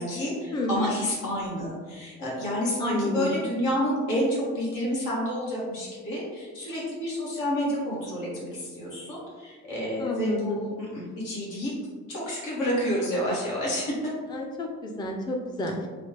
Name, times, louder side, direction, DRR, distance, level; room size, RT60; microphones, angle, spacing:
voice 1, 0.0-11.7 12.1-13.9, equal, 85° left, -5 dB, 1.1 m, -29 dB
voice 2, 0.5-0.9 2.8-3.3 10.0-10.6 14.3-15.9, left 1 dB, 15° left, 1 dB, 0.4 m, -30 dB
3.2 x 2.0 x 2.9 m, 1.4 s
cardioid pair, 90°, 30 cm